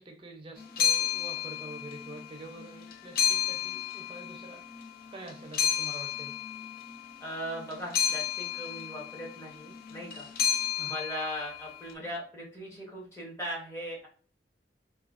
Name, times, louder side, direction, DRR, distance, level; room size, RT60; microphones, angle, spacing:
voice 1, 0.0-4.7 5.1-6.3 10.8-10.9, right 2 dB, 30° right, 3 dB, 0.5 m, -46 dB
sound 1, 0.6-2.3 2.6-4.9 5.3-11.8, left 8 dB, 55° left, 0.3 m, -32 dB
voice 2, 7.2-10.3 10.9-14.1, equal, 15° left, -4 dB, 0.9 m, -39 dB
3.1 x 2.2 x 2.4 m, 0.41 s
head